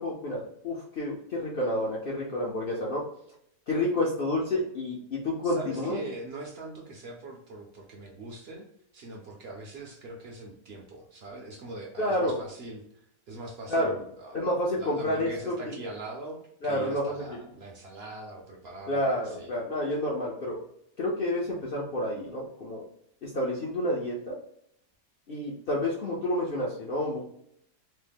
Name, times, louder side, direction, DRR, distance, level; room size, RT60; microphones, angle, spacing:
voice 1, 0.0-3.0 3.7-6.0 12.0-12.4 13.7-13.9 14.3-15.8 16.6-17.1 18.9-20.6 21.0-22.8 23.2-24.4 25.3-27.2, left 1 dB, 60° left, -4 dB, 0.6 m, -29 dB
voice 2, 5.4-8.7 8.9-12.8 13.3-14.4 14.7-19.5, right 2 dB, 60° right, 1 dB, 0.6 m, -42 dB
3.1 x 2.0 x 3.3 m, 0.73 s
omnidirectional pair, 1.6 m